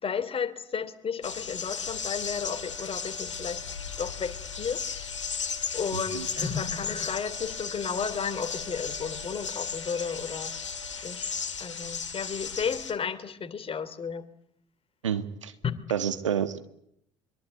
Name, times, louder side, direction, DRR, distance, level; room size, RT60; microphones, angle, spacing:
voice 1, 0.0-3.6 4.0-4.8 5.7-10.5 11.0-14.2 15.6-15.7, left 6 dB, 40° left, 12 dB, 2.9 m, -33 dB
sound 1, 1.2-12.9, left 6 dB, 90° left, 2.0 m, -35 dB
sound 2, 1.7-11.7, right 2 dB, 20° right, 6.7 m, -51 dB
voice 2, 5.9-6.4 15.0-15.5 15.9-16.6, right 8 dB, 90° right, 10 dB, 1.5 m, -30 dB
23.5 x 23.5 x 9.4 m, 0.73 s
hypercardioid pair, 60°, 15 cm